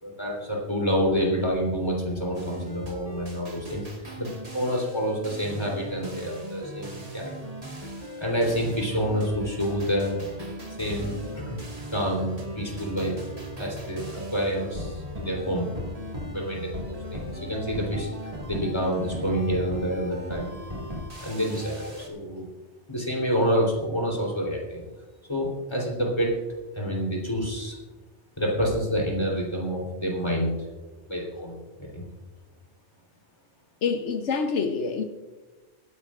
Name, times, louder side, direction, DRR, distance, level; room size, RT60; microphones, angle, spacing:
voice 1, 0.0-3.9 4.2-7.3 8.2-10.1 10.8-11.6 11.9-13.3 13.6-15.7 16.3-20.5 21.2-22.5 22.9-24.8 25.3-26.4 26.7-27.7 28.4-30.6 31.1-31.5 31.8-32.0, equal, 25° left, -2 dB, 3.4 m, -28 dB
sound 1, 2.4-22.1, equal, 35° right, 1.9 m, -38 dB
voice 2, 33.8-35.0, left 5 dB, 80° left, 5 dB, 1.2 m, -26 dB
23.5 x 10.5 x 2.5 m, 1.2 s
omnidirectional pair, 1.2 m